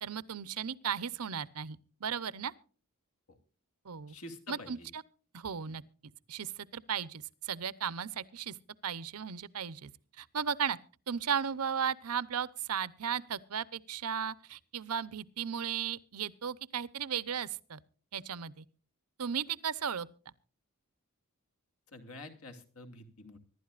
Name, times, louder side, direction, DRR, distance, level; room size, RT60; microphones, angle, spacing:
voice 1, 0.0-2.5 3.8-4.1 4.5-5.0 5.3-5.8 6.3-8.5 8.8-9.9 10.2-10.8 11.1-17.8 18.1-18.6 19.2-20.1, right 7 dB, 85° right, 0.8 m, -35 dB
voice 2, 4.1-4.9 5.7-5.8 21.9-23.4, left 2 dB, 75° left, 2.7 m, -48 dB
24.5 x 12.0 x 2.5 m
head